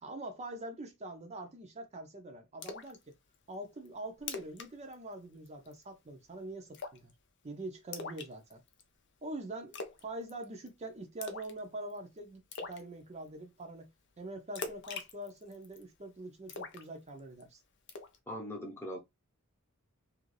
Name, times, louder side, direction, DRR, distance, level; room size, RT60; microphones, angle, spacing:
voice 1, 0.0-3.0 3.5-7.1 7.4-8.6 9.2-13.9 14.2-17.6, right 2 dB, 30° right, 0.6 m, -44 dB
Splash splatter, 2.6-3.0 3.3-3.4 3.8-3.9 4.2-4.7 4.9-5.1 5.5-5.8 6.7-7.1 7.9-8.8 9.7-10.0 10.3-10.7 11.2-11.6 11.9-12.0 12.5-12.8 14.5-15.8 16.5-17.4 17.9-18.2, left 4 dB, 55° left, 0.6 m, -42 dB
voice 2, 18.3-19.0, equal, 10° left, 0.9 m, -40 dB
2.9 x 2.5 x 3.1 m
head